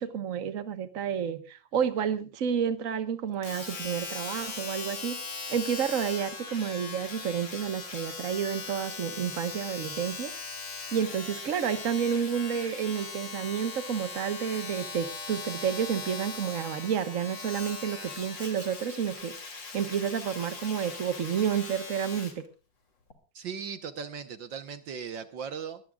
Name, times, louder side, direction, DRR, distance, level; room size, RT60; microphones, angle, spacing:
voice 1, 0.0-5.2 5.5-10.3 10.9-22.4, right 8 dB, 45° right, 10 dB, 1.6 m, -30 dB
Domestic sounds home sounds, 3.4-22.4 23.1-23.2, left 4 dB, 60° left, 3.6 m, -40 dB
voice 2, 23.4-25.8, right 6 dB, 65° right, 10 dB, 1.7 m, -38 dB
23.5 x 19.0 x 2.4 m, 0.34 s
omnidirectional pair, 2.3 m